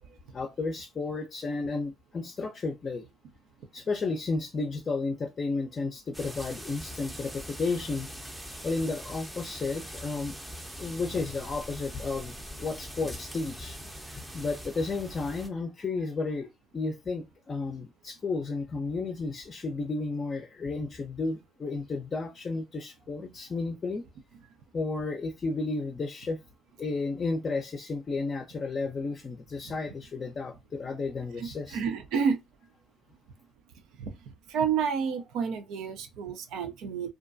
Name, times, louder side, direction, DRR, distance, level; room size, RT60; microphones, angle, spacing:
voice 1, 0.3-3.0 3.7-8.1 8.6-10.4 10.8-13.8 14.0-24.0 24.7-26.4 26.8-31.8, left 3 dB, 40° left, 0.5 m, -32 dB
sound 1, 6.1-15.5, equal, 10° right, 0.6 m, -42 dB
voice 2, 31.4-32.4 34.0-37.1, right 6 dB, 70° right, 0.5 m, -30 dB
2.5 x 2.2 x 2.5 m
hypercardioid pair, 60°, 0 cm